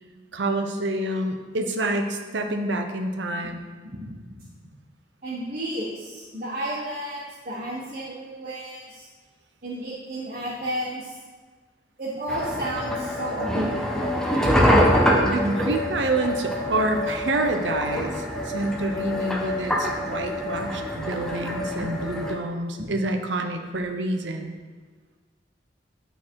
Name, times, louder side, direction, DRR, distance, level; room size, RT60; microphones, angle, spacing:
voice 1, 0.3-3.6 15.2-24.5, right 2 dB, 80° right, 5 dB, 0.8 m, -27 dB
voice 2, 5.2-9.1 9.6-11.2 12.0-14.1, right 1 dB, 45° right, -8 dB, 1.5 m, -32 dB
sound 1, 12.3-22.3, equal, 5° left, 0.7 m, -25 dB
9.6 x 4.0 x 4.7 m, 1.4 s
head